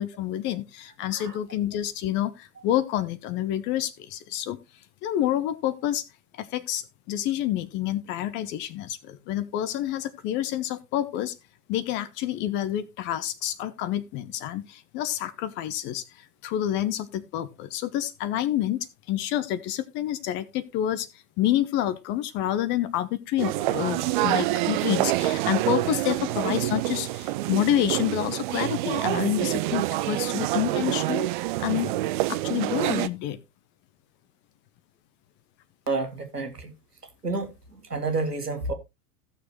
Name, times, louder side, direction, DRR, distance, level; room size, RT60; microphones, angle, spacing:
voice 1, 0.0-4.6 5.0-6.0 6.4-11.3 11.7-21.1 21.4-31.3 31.6-32.0 32.3-33.4, left 12 dB, 25° left, 0.6 m, -28 dB
voice 2, 1.1-1.4 35.9-36.7 37.2-38.7, right 3 dB, 90° right, 1.8 m, -30 dB
sound 1, 23.4-33.1, right 16 dB, 35° right, 0.5 m, -27 dB
15.5 x 6.5 x 3.0 m
figure-of-eight pair, 95°, 46 cm